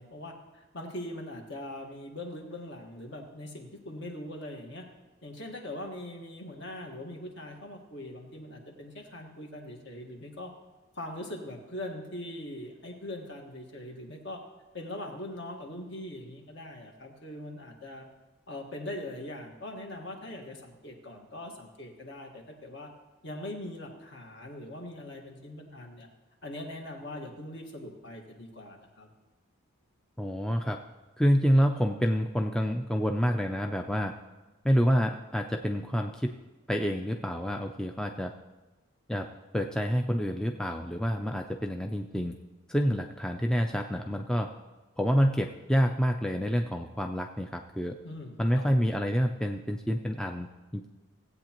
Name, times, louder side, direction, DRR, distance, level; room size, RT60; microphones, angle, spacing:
voice 1, 0.0-4.9 5.2-10.5 10.9-14.4 14.7-18.1 18.5-22.9 23.2-26.1 26.4-29.1 48.0-48.8, left 1 dB, 55° left, 1 dB, 1.5 m, -41 dB
voice 2, 30.2-30.8 31.2-34.1 34.6-36.3 36.7-38.3 39.1-39.3 39.5-42.3 42.7-44.5 45.0-48.0 48.4-50.5 50.7-50.9, equal, 5° left, 3 dB, 0.3 m, -27 dB
17.0 x 8.4 x 3.0 m, 1.1 s
head